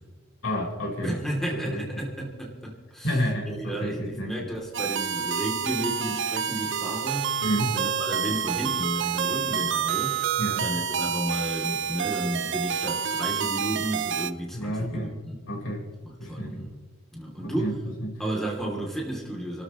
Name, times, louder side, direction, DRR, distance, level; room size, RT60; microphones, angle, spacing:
voice 1, 0.4-1.2 1.6-2.1 3.0-4.3 7.4-7.8 10.4-10.7 14.5-15.1 15.5-15.8 16.2-16.7 17.4-17.7 18.0-18.2, equal, 70° left, 0 dB, 4.5 m, -30 dB
voice 2, 1.0-3.1 3.4-7.4 7.7-10.3 10.6-15.4 16.2-16.8 17.1-17.7 18.2-19.6, right 1 dB, ahead, -2 dB, 2.9 m, -32 dB
sound 1, 4.7-14.3, right 8 dB, 60° right, 0.7 m, -28 dB
30.0 x 13.0 x 3.1 m, 1.3 s
head